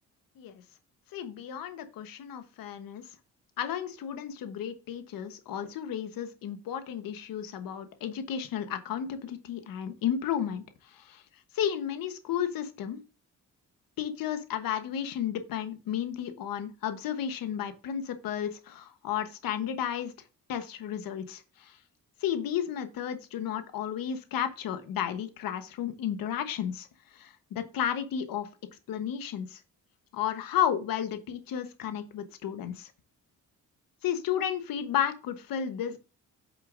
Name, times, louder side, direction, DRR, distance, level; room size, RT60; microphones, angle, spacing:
voice 1, 1.1-3.0 3.6-10.6 10.9-11.2 11.5-13.0 14.0-20.1 20.5-21.8 22.2-26.9 27.1-28.5 28.9-29.6 30.1-32.9 34.0-36.0, left 9 dB, 85° left, 9 dB, 1.2 m, -33 dB
8.5 x 6.7 x 2.6 m, 0.32 s
cardioid pair, 90°, 33 cm